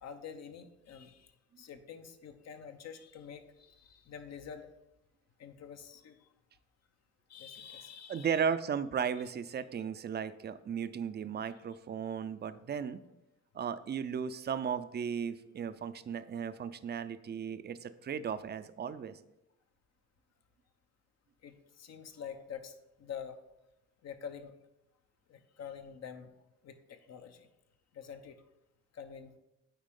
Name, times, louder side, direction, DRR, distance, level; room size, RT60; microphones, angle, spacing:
voice 1, 0.0-4.7 5.4-6.3 7.3-8.4 21.4-23.4 24.0-24.5 25.3-26.3 26.6-27.5 27.9-28.4 28.9-29.3, left 7 dB, 60° left, 8 dB, 0.8 m, -47 dB
voice 2, 8.1-13.0 13.5-19.2, right 7 dB, 35° right, 13 dB, 0.5 m, -35 dB
9.1 x 4.3 x 3.7 m, 0.89 s
cardioid pair, 90°, 30 cm